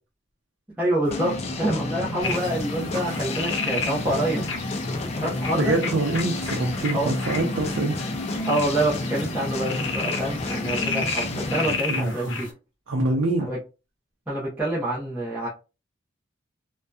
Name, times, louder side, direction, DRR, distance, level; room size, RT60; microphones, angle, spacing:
voice 1, 0.8-4.5 5.2-5.7 6.9-7.1 8.5-12.5 13.4-13.6 14.3-15.5, right 1 dB, 10° right, -7 dB, 0.6 m, -27 dB
sound 1, 1.1-11.8, left 2 dB, 30° left, 0.3 m, -30 dB
sound 2, 2.2-12.5, left 4 dB, 75° left, 0.6 m, -33 dB
voice 2, 2.8-3.2 5.5-8.0 11.9-12.4 12.9-13.5, right 2 dB, 80° right, 0 dB, 0.6 m, -25 dB
2.6 x 2.2 x 2.2 m, 0.31 s
head